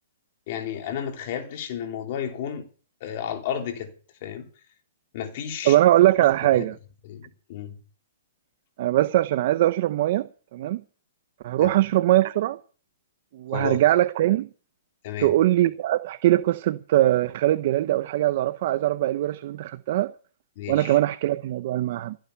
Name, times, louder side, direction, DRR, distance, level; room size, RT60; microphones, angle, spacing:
voice 1, 0.5-2.7 3.0-3.9 4.2-4.5 5.1-5.8 6.5-6.7 7.0-7.8 11.6-11.8 13.5-13.8 15.0-15.3 20.5-21.0, left 9 dB, 45° left, 3.4 m, -32 dB
voice 2, 5.6-6.7 8.8-10.8 11.4-12.6 13.3-14.5 15.2-20.1 20.7-22.2, right 14 dB, 45° right, 0.7 m, -21 dB
16.5 x 8.9 x 6.9 m
hypercardioid pair, 155°, 0 cm